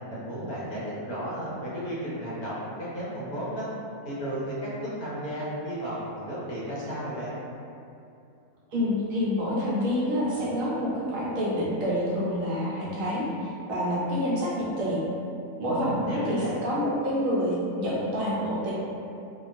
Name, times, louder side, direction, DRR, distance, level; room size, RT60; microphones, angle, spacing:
voice 1, 0.1-3.7 4.0-7.3 15.7-16.5, right 1 dB, 70° left, -8 dB, 1.3 m, -33 dB
voice 2, 8.7-15.0 15.6-18.7, equal, 70° right, -7 dB, 0.9 m, -27 dB
2.9 x 2.2 x 2.4 m, 2.6 s
omnidirectional pair, 1.6 m